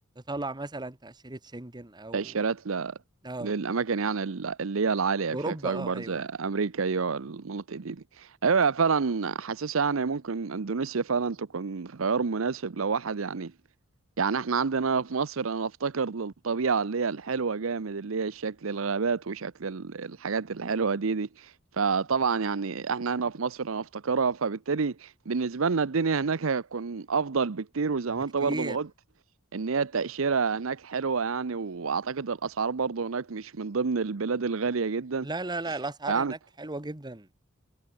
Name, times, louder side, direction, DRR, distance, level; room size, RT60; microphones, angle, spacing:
voice 1, 0.1-2.4 3.2-3.5 5.3-6.3 28.1-28.8 35.2-37.3, right 2 dB, 20° right, 1.3 m, -36 dB
voice 2, 2.1-3.0 3.4-13.5 14.2-28.9 29.5-35.3 36.1-36.3, right 5 dB, 70° right, 0.7 m, -28 dB
head